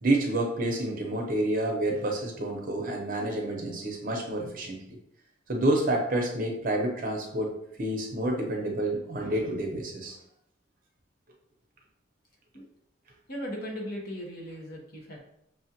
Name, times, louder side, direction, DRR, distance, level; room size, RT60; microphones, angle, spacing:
voice 1, 0.0-4.8 5.5-7.5 7.8-10.2, right 1 dB, 45° right, 1 dB, 0.7 m, -28 dB
voice 2, 13.3-15.3, equal, 55° left, -1 dB, 0.9 m, -37 dB
5.7 x 2.4 x 2.8 m, 0.75 s
head